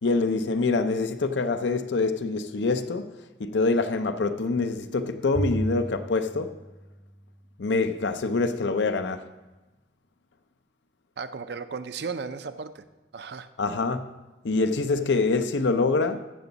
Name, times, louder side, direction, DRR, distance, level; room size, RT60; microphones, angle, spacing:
voice 1, 0.0-3.1 3.4-6.6 7.6-9.3 13.6-14.1 14.4-16.3, left 3 dB, 80° left, 0.6 m, -25 dB
Bowed string instrument, 5.3-7.7, right 1 dB, 10° right, 0.4 m, -34 dB
voice 2, 11.2-12.9 13.1-13.5, right 5 dB, 65° right, 0.5 m, -35 dB
15.0 x 6.9 x 4.0 m
head